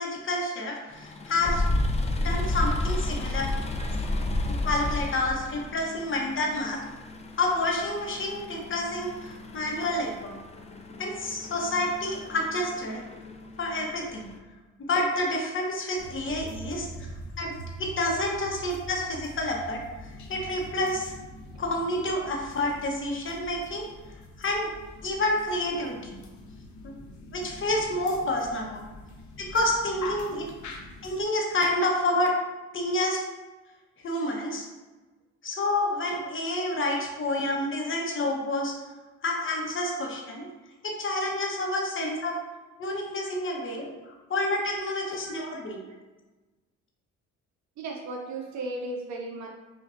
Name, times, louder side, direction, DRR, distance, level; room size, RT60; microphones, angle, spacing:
voice 1, 0.0-1.6 2.2-3.5 4.6-6.8 7.4-10.4 11.0-13.0 13.6-14.2 14.8-17.1 17.4-17.5 17.8-19.8 20.3-21.1 21.6-23.9 24.4-24.7 25.0-26.2 26.8-26.9 27.3-28.8 29.4-30.5 31.0-32.3 32.7-33.2 34.0-34.7 35.4-38.7 39.2-40.5 40.8-42.3 42.8-43.9 44.3-45.8, left 1 dB, 40° left, 0 dB, 1.0 m, -28 dB
sound 1, 0.9-14.4, left 2 dB, 20° left, 0.4 m, -32 dB
sound 2, 16.0-31.2, left 1 dB, 75° left, 0.7 m, -44 dB
voice 2, 47.8-49.5, right 2 dB, 65° right, 0 dB, 0.6 m, -37 dB
5.5 x 2.5 x 2.5 m, 1.2 s
cardioid pair, 90°, 30 cm